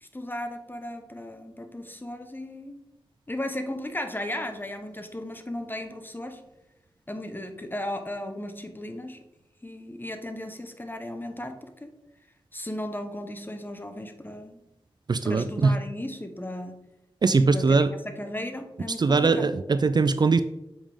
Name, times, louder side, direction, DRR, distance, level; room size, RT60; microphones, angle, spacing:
voice 1, 0.0-2.8 3.3-6.4 7.1-9.2 9.6-11.9 12.5-14.6 15.2-16.8 17.4-19.5, left 1 dB, 20° left, 7 dB, 1.0 m, -36 dB
voice 2, 15.1-15.7 17.2-17.9 19.0-20.4, right 4 dB, 45° right, 11 dB, 0.4 m, -21 dB
7.3 x 5.1 x 3.5 m, 0.91 s
cardioid pair, 45°, 10 cm